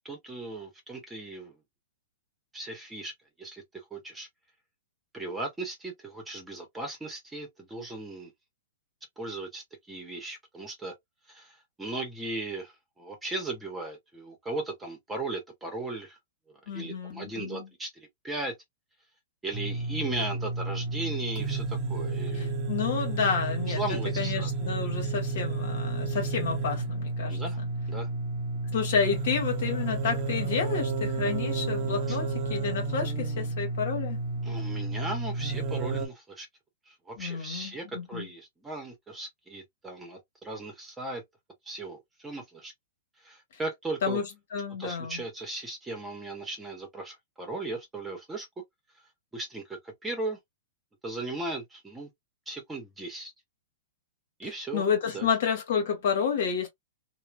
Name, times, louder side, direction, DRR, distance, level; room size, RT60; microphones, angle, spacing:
voice 1, 0.0-1.6 2.5-3.1 3.4-4.3 5.1-8.3 9.2-10.9 11.3-16.2 16.5-18.5 19.4-22.6 23.6-24.5 27.3-27.6 27.9-28.1 32.1-32.2 34.4-36.5 36.9-41.2 41.6-42.7 43.2-44.2 44.8-48.5 49.3-50.4 51.0-52.1 52.5-53.3 54.4-54.8 55.1-55.3, right 2 dB, 10° right, 1.1 m, -37 dB
voice 2, 16.7-17.7 22.3-27.4 28.7-34.2 37.2-38.3 44.0-44.2 44.5-45.2 54.4-56.7, left 6 dB, 60° left, 1.4 m, -30 dB
sound 1, 19.5-36.1, right 3 dB, 40° right, 0.7 m, -31 dB
3.0 x 2.4 x 2.2 m
hypercardioid pair, 110°, 0 cm